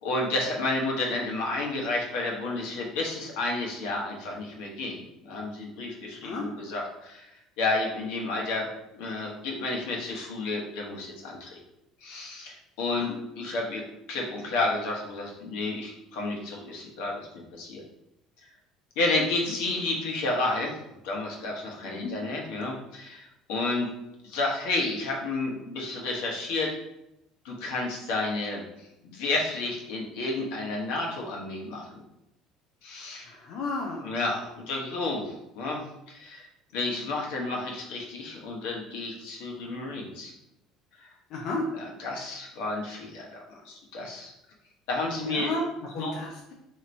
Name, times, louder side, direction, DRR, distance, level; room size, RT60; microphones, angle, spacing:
voice 1, 0.0-7.2 7.6-11.6 12.0-13.8 14.1-17.3 17.6-17.8 19.0-20.8 21.0-23.9 24.2-26.7 27.4-31.9 32.8-33.3 34.0-35.8 36.1-36.5 36.7-40.3 41.7-44.3 44.9-45.5 46.0-46.1, left 2 dB, 80° left, -1 dB, 1.0 m, -31 dB
voice 2, 33.2-34.0 41.3-41.6 45.3-45.6 45.9-46.5, left 3 dB, 55° left, -1 dB, 0.5 m, -32 dB
2.8 x 2.6 x 4.3 m, 0.89 s
cardioid pair, 160°, 0 cm